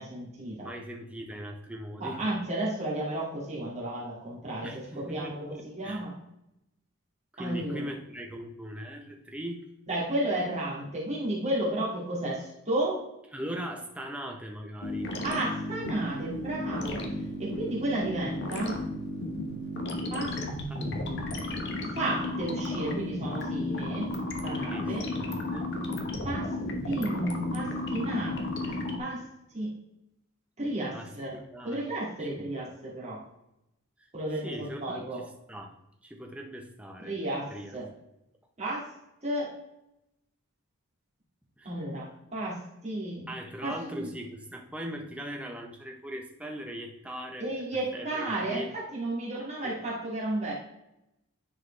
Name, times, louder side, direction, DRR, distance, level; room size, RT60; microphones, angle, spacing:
voice 1, 0.0-0.7 2.0-4.7 5.0-6.1 7.4-7.9 9.9-13.0 15.2-17.0 17.4-18.8 20.1-20.3 21.9-24.1 24.4-25.1 26.2-26.5 26.8-28.3 28.6-29.2 29.5-29.7 30.6-31.4 31.6-33.2 34.1-35.2 37.0-37.9 38.6-38.8 39.2-39.5 41.6-43.3 43.6-44.1 47.4-50.5, right 1 dB, 30° right, -6 dB, 2.3 m, -32 dB
voice 2, 0.6-2.2 4.6-6.0 7.3-9.6 13.3-15.1 20.7-21.3 24.7-25.7 30.9-31.8 32.2-32.5 34.4-35.7 36.0-37.1 37.5-37.7 41.6-41.7 43.3-47.5 47.9-48.7 49.6-49.7, equal, 5° right, 2 dB, 0.8 m, -40 dB
sound 1, 14.8-29.0, left 1 dB, 50° left, 1.1 m, -33 dB
9.8 x 4.7 x 3.3 m, 0.85 s
head